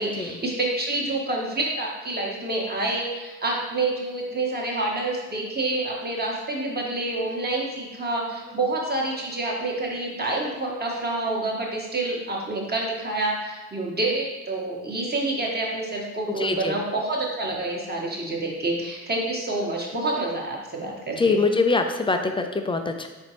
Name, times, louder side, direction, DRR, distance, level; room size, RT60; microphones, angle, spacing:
voice 1, 0.0-21.4, right 2 dB, 25° right, -2 dB, 1.3 m, -28 dB
voice 2, 16.4-16.8 21.2-23.1, left 3 dB, 15° left, 6 dB, 0.4 m, -23 dB
4.2 x 3.9 x 3.0 m, 1.2 s
hypercardioid pair, 50°, 42 cm